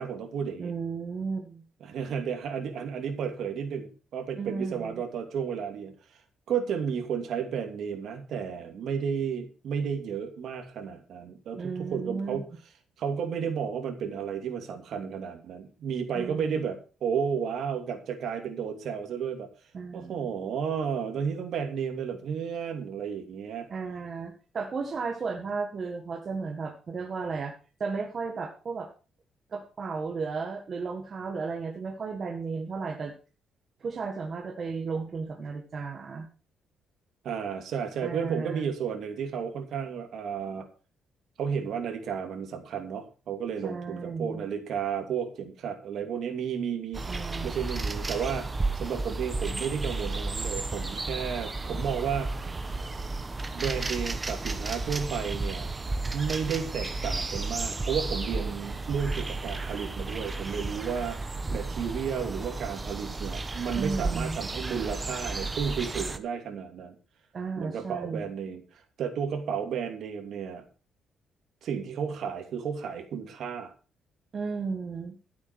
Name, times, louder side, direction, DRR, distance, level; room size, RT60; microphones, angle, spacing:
voice 1, 0.0-0.7 1.8-5.9 6.5-12.5 13.0-19.5 19.9-23.7 37.2-40.7 41.4-48.5 48.8-52.3 53.5-55.7 56.1-61.2 61.5-66.9 67.6-70.6 71.6-73.7, right 7 dB, 60° right, 6 dB, 2.8 m, -32 dB
voice 2, 0.6-1.6 4.4-5.0 11.6-12.4 16.1-16.6 19.7-20.3 23.7-27.5 27.8-28.9 29.5-33.1 33.8-36.3 38.0-38.7 43.6-44.4 47.1-47.5 63.7-64.4 67.3-68.3 74.3-75.1, right 4 dB, 35° right, 2 dB, 1.8 m, -34 dB
sound 1, 46.9-66.2, right 3 dB, 20° right, 1.1 m, -33 dB
13.0 x 8.3 x 6.2 m, 0.36 s
cardioid pair, 145°, 0 cm